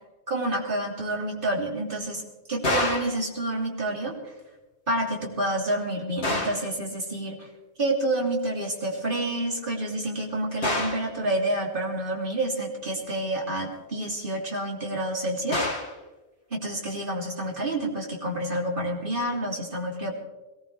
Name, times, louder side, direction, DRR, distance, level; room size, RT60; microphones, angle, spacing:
voice 1, 0.3-2.2 2.5-4.3 4.9-7.5 7.8-15.7 16.5-20.1, right 1 dB, 50° right, -1 dB, 3.4 m, -28 dB
sound 1, 2.6-3.2 6.2-6.7 10.6-11.1 15.5-16.0, left 2 dB, 75° left, 2.5 m, -27 dB
22.0 x 18.5 x 3.4 m, 1.2 s
omnidirectional pair, 1.1 m